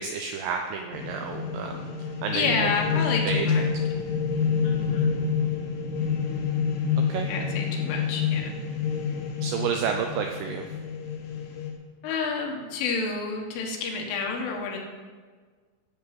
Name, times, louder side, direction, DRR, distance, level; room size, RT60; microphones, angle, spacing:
voice 1, 0.0-1.9 2.2-2.7 3.3-3.5 7.1-7.3 9.4-10.6, right 6 dB, 85° right, 4 dB, 2.3 m, -30 dB
sound 1, 0.9-11.7, left 6 dB, 70° left, 2.0 m, -28 dB
voice 2, 2.3-3.7 4.6-5.2 7.3-8.5 12.0-14.8, left 5 dB, 85° left, 0 dB, 4.0 m, -29 dB
11.5 x 6.1 x 7.6 m, 1.5 s
omnidirectional pair, 5.5 m